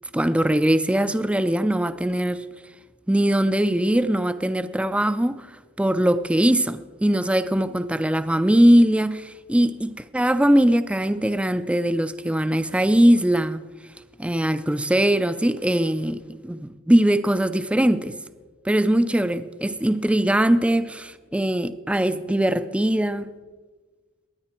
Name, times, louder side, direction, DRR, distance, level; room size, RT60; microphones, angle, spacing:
voice 1, 0.1-2.4 3.1-5.5 5.8-13.6 14.2-18.2 18.6-23.3, right 1 dB, 5° right, 0.4 m, -21 dB
22.5 x 9.7 x 4.4 m
head